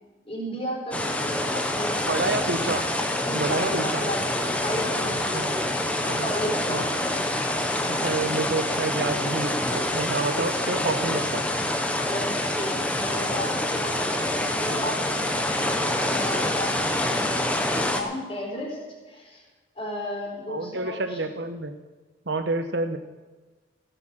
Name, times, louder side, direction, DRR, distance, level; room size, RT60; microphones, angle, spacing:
voice 1, 0.2-2.5 3.2-4.2 4.6-5.5 6.2-7.2 12.0-18.8 19.0-19.4 19.7-21.2, equal, 30° left, -3 dB, 4.2 m, -34 dB
sound 1, 0.9-18.0, left 1 dB, 5° left, 1.0 m, -26 dB
voice 2, 2.1-2.8 3.3-4.0 5.3-5.5 6.1-6.3 6.7-6.8 7.9-11.4 20.5-21.8 22.3-23.0, right 3 dB, 65° right, 8 dB, 1.0 m, -28 dB
16.0 x 7.1 x 7.4 m, 1.2 s
head